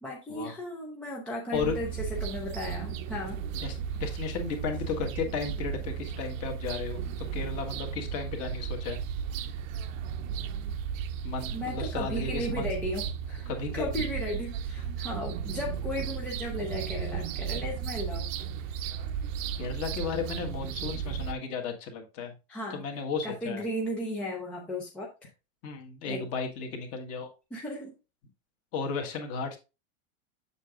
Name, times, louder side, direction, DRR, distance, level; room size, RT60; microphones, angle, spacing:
voice 1, 0.0-3.4 11.5-13.5 13.7-18.3 22.5-22.8 23.2-25.3 26.1-26.2 27.5-27.9, left 1 dB, 5° left, -2 dB, 0.3 m, -35 dB
sound 1, 1.5-21.3, right 8 dB, 80° right, 0.7 m, -35 dB
voice 2, 3.6-7.0 7.3-9.0 11.2-12.7 13.5-13.9 19.6-22.3 22.7-23.6 25.6-27.3 28.7-29.6, left 5 dB, 35° left, 3 dB, 1.6 m, -34 dB
7.2 x 7.0 x 2.4 m, 0.29 s
supercardioid pair, 165°, 39 cm